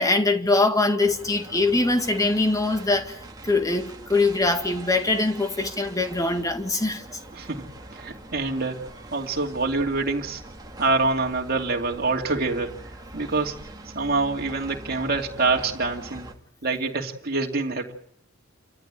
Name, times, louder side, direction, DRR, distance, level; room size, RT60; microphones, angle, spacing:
voice 1, 0.0-7.0, left 2 dB, 15° left, 1.8 m, -23 dB
sound 1, 1.0-16.3, right 1 dB, 20° right, 2.2 m, -43 dB
voice 2, 7.3-7.6 7.9-10.4 10.8-13.6 13.9-16.3 16.6-17.9, right 3 dB, 50° right, 2.6 m, -26 dB
29.0 x 14.0 x 9.0 m
head